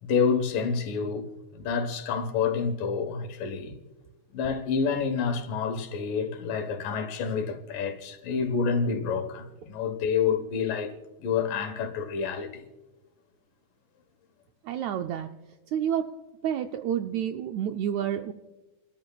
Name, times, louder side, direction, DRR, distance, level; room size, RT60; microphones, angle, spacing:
voice 1, 0.0-1.3 1.5-3.7 4.3-10.9 11.2-12.6, left 6 dB, 80° left, 2.9 m, -28 dB
voice 2, 14.6-15.3 15.7-16.1 16.4-18.3, right 9 dB, 80° right, 1.6 m, -29 dB
28.5 x 13.5 x 2.3 m
omnidirectional pair, 3.8 m